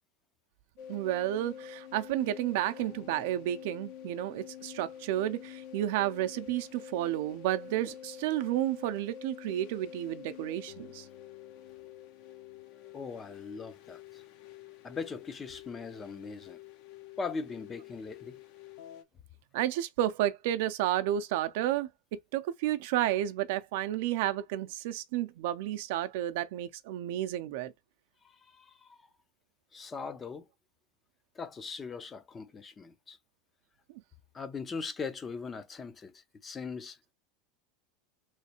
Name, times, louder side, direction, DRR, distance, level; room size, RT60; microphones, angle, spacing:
sound 1, 0.8-19.0, left 10 dB, 60° left, 0.7 m, -48 dB
voice 1, 0.9-11.0 19.5-21.9 22.3-27.7, right 13 dB, 70° right, 0.5 m, -31 dB
voice 2, 12.9-14.2 14.8-16.6 17.2-18.4 28.2-29.1 29.7-30.5 31.3-33.2 34.3-37.1, left 4 dB, 20° left, 0.5 m, -40 dB
3.2 x 3.2 x 2.9 m
supercardioid pair, 135°, 0 cm